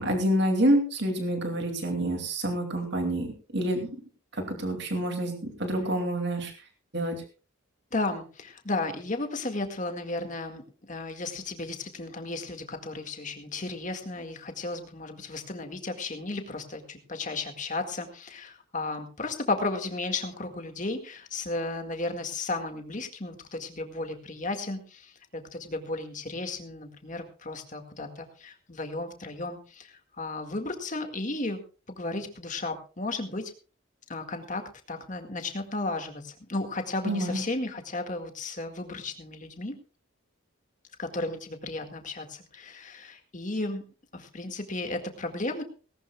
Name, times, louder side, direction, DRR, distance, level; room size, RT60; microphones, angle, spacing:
voice 1, 0.0-3.3 3.5-3.9 4.3-6.5 6.9-7.2 37.0-37.4, right 1 dB, 50° right, 4 dB, 2.7 m, -27 dB
voice 2, 7.9-31.6 31.9-33.5 34.1-39.8 41.0-43.8 44.1-45.6, left 2 dB, 35° left, 5 dB, 1.9 m, -34 dB
18.0 x 18.0 x 2.4 m, 0.36 s
head